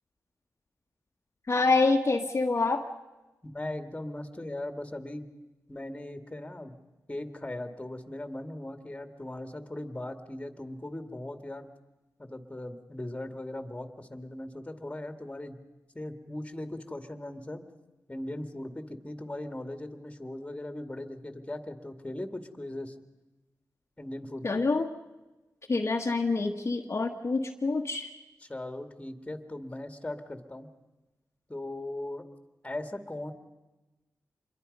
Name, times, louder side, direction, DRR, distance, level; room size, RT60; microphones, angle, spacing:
voice 1, 1.5-2.8 24.4-24.9 25.7-28.1, left 3 dB, 45° left, 2 dB, 1.4 m, -26 dB
voice 2, 3.4-5.3 5.7-6.7 7.1-11.7 12.2-15.6 15.9-17.6 18.1-22.9 24.0-24.6 28.5-30.7 31.5-32.2 32.6-33.3, left 1 dB, 20° left, 7 dB, 2.2 m, -39 dB
26.5 x 22.5 x 5.4 m, 1.1 s
cardioid pair, 60°, 6 cm